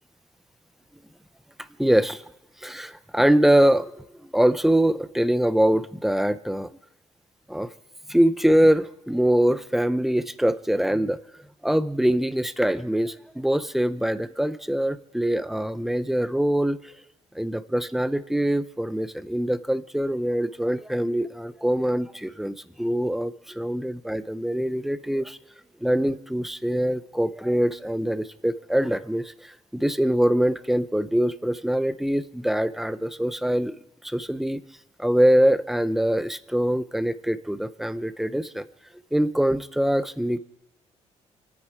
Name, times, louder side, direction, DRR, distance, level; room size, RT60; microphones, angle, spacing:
voice 1, 1.8-2.2 2.6-3.9 4.3-6.7 7.5-7.7 8.1-11.2 11.6-16.8 17.3-25.4 25.8-33.8 34.0-34.6 35.0-38.7 39.1-40.4, right 1 dB, ahead, 15 dB, 0.6 m, -23 dB
29.0 x 9.7 x 4.5 m, 0.81 s
cardioid pair, 145°, 12 cm